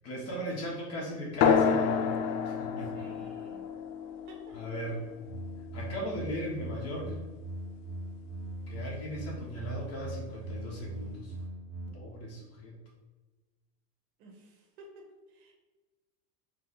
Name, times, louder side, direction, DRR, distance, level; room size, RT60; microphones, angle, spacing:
voice 1, 0.0-2.1 2.4-3.1 4.5-5.0 5.7-7.1 8.7-11.3 11.9-12.8, equal, 30° left, -3 dB, 1.4 m, -37 dB
sound 1, 1.4-6.4, left 6 dB, 70° left, 0.6 m, -30 dB
voice 2, 2.9-3.7 4.3-4.6 14.2-15.5, right 2 dB, 65° right, 1 dB, 1.3 m, -53 dB
sound 2, 5.2-11.9, right 1 dB, 45° right, 1.0 m, -41 dB
4.9 x 2.3 x 3.9 m, 1.2 s
supercardioid pair, 145°, 47 cm